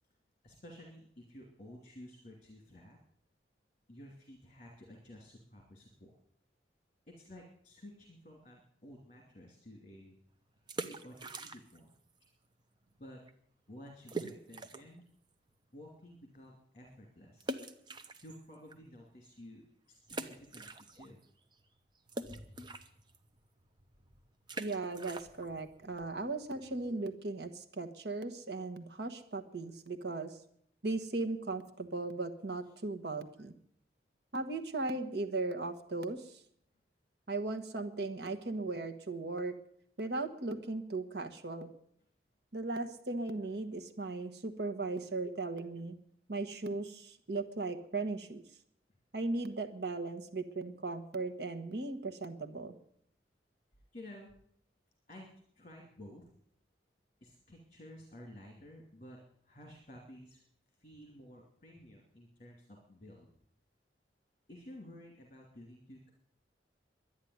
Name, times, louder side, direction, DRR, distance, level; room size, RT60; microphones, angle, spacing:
voice 1, 0.4-3.0 3.9-6.1 7.2-10.2 10.8-11.9 13.0-13.2 13.7-15.0 15.7-17.5 18.2-21.2 22.2-22.7 32.6-32.7 53.9-54.3 55.1-55.3 55.5-56.3 57.2-59.2 59.4-60.4 60.8-63.3 64.5-66.1, left 1 dB, 40° left, 1 dB, 2.7 m, -53 dB
sound 1, 10.6-11.9 12.2-12.3 12.9-13.0 13.3-13.4 14.1-15.0 15.5-15.6 17.4-18.7 19.2-19.3 20.0-21.2 21.5-27.0, right 2 dB, 25° right, 1.0 m, -44 dB
voice 2, 24.6-30.4 30.8-33.5 34.3-36.4 37.3-39.5 40.0-41.7 42.5-45.9 46.3-48.4 49.1-52.7, right 3 dB, 65° right, 8 dB, 1.3 m, -37 dB
11.5 x 10.5 x 9.4 m, 0.67 s
head